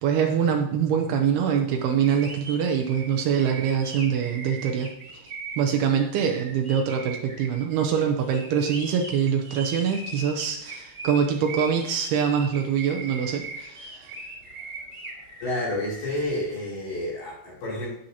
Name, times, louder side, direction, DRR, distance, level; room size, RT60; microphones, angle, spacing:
voice 1, 0.0-4.9 5.6-14.1, right 7 dB, 85° right, 3 dB, 2.8 m, -24 dB
sound 1, 1.8-16.1, right 2 dB, 20° right, 2.5 m, -40 dB
voice 2, 15.4-17.9, left 1 dB, 70° left, -6 dB, 5.3 m, -29 dB
10.5 x 9.6 x 2.9 m, 0.76 s
omnidirectional pair, 4.5 m